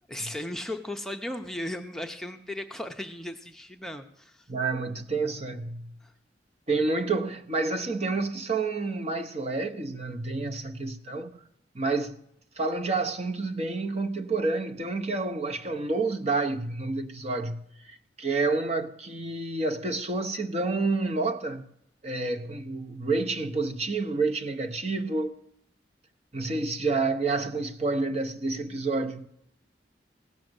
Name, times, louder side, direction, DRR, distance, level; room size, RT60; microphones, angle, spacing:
voice 1, 0.1-4.5 6.0-6.1, left 1 dB, ahead, 0.7 m, -36 dB
voice 2, 4.5-5.9 6.7-11.4 11.7-12.2 12.6-17.6 17.9-21.7 22.0-25.4 26.3-29.3, right 3 dB, 40° right, 0.9 m, -29 dB
16.5 x 6.4 x 7.9 m
head